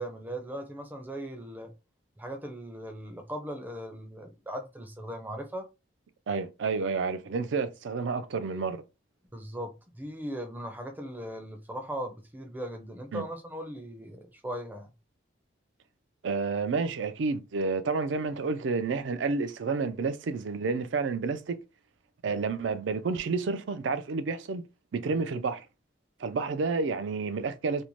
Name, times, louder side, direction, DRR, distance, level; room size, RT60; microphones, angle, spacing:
voice 1, 0.0-1.7 2.2-5.6 9.3-14.9 25.1-25.2, right 1 dB, 10° right, 0.4 m, -38 dB
voice 2, 6.3-8.8 13.1-13.2 16.2-21.6 22.2-24.6 24.9-25.7 26.2-27.8, right 4 dB, 70° right, 0.4 m, -30 dB
2.6 x 2.1 x 3.0 m
head